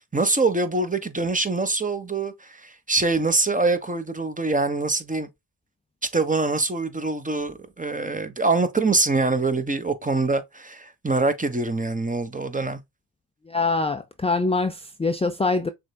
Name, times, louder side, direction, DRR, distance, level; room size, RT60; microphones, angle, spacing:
voice 1, 0.0-5.3 6.1-12.8, right 3 dB, 20° right, 1.1 m, -24 dB
voice 2, 13.5-15.7, left 3 dB, 15° left, 0.6 m, -24 dB
6.3 x 3.3 x 2.2 m
cardioid pair, 60°, 41 cm